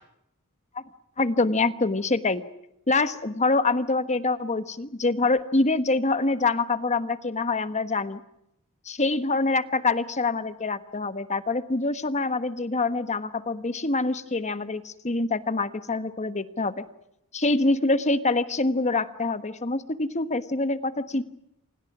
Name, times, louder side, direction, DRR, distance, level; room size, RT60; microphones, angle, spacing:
voice 1, 1.2-2.4 2.9-8.2 8.8-16.9 17.3-21.2, left 3 dB, 30° left, 12 dB, 1.3 m, -25 dB
28.5 x 26.5 x 6.2 m, 0.82 s
head